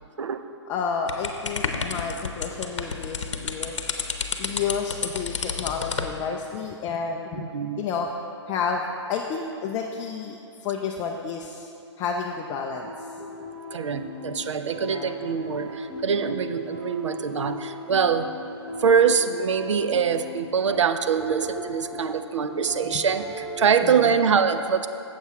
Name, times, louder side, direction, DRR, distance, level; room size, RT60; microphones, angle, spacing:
voice 1, 0.7-3.9 4.4-7.5 7.8-8.1 8.5-11.7 12.0-12.9 14.8-15.2 22.9-23.0 23.8-24.2, left 5 dB, 20° left, 1 dB, 0.4 m, -31 dB
sound 1, 1.1-6.1, left 5 dB, 85° left, 0.8 m, -30 dB
voice 2, 7.3-7.8 13.7-18.3 18.8-24.9, right 6 dB, 85° right, 9 dB, 0.5 m, -24 dB
sound 2, 12.8-24.2, left 2 dB, 5° right, 0.9 m, -38 dB
7.9 x 7.3 x 4.8 m, 2.6 s
hypercardioid pair, 140°, 15 cm